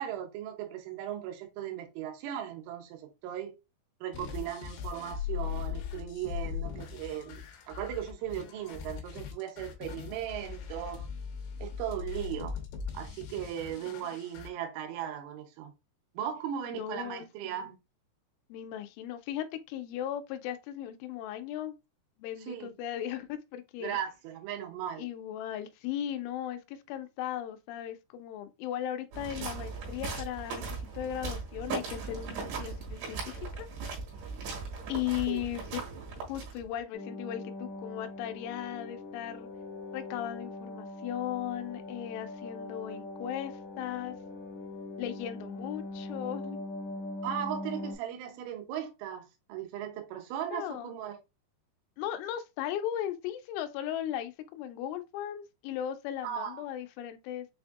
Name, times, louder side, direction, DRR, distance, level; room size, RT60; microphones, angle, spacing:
voice 1, 0.0-3.5 4.0-11.1 11.6-12.6 12.9-15.7 16.1-17.8 22.4-22.7 23.8-25.1 35.3-35.4 47.2-51.2 56.2-56.7, right 10 dB, 90° right, 3.3 m, -37 dB
sound 1, 4.1-14.5, left 8 dB, 70° left, 3.1 m, -39 dB
voice 2, 16.7-17.7 18.5-21.8 22.2-24.0 25.0-30.6 30.9-33.7 34.9-35.8 36.2-39.5 39.9-44.2 45.0-46.6 50.5-50.9 52.0-57.5, left 11 dB, 90° left, 3.1 m, -37 dB
sound 2, 29.1-36.8, right 4 dB, 70° right, 3.5 m, -38 dB
sound 3, 36.9-48.0, left 2 dB, 55° left, 1.6 m, -41 dB
7.2 x 2.6 x 2.4 m
omnidirectional pair, 5.3 m